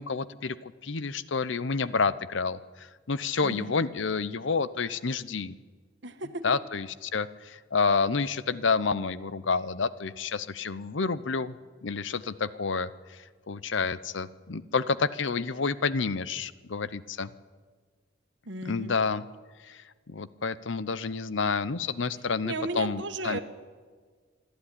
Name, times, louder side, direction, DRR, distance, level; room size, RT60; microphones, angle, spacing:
voice 1, 0.0-5.5 6.4-11.6 11.8-17.3 18.6-19.2 19.6-23.4, left 4 dB, 70° left, 16 dB, 0.8 m, -29 dB
voice 2, 3.4-3.7 6.0-6.4 18.5-18.9 22.4-23.4, right 2 dB, 65° right, 8 dB, 1.6 m, -34 dB
27.0 x 12.0 x 9.9 m, 1.5 s
head